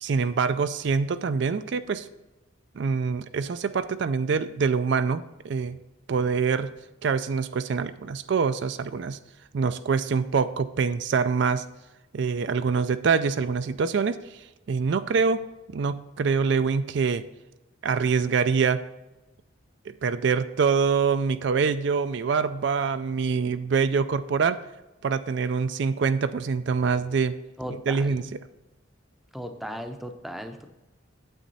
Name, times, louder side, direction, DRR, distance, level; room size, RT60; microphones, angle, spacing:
voice 1, 0.0-2.1 2.7-5.8 6.1-6.7 7.0-9.2 9.5-11.6 12.1-15.4 15.7-17.2 17.8-18.8 19.9-24.6 25.0-27.4 27.7-28.4, right 5 dB, 60° right, 12 dB, 0.4 m, -25 dB
voice 2, 27.6-28.2 29.3-30.7, equal, ahead, 6 dB, 0.6 m, -36 dB
9.1 x 7.6 x 4.1 m, 1.0 s
head